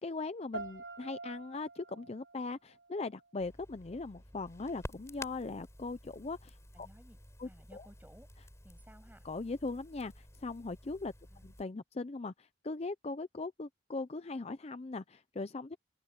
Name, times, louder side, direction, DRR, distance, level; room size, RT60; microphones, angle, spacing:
voice 1, 0.0-6.9 7.4-7.9 9.2-11.1 11.4-15.8, left 3 dB, 35° left, 0.5 m, -40 dB
sound 1, 0.5-3.5, right 3 dB, 75° right, 3.7 m, -47 dB
Crackle, 3.4-11.6, left 1 dB, 15° left, 4.6 m, -51 dB
voice 2, 6.7-7.2 7.4-8.3 8.6-9.2 11.3-11.5, equal, 10° right, 7.4 m, -58 dB
head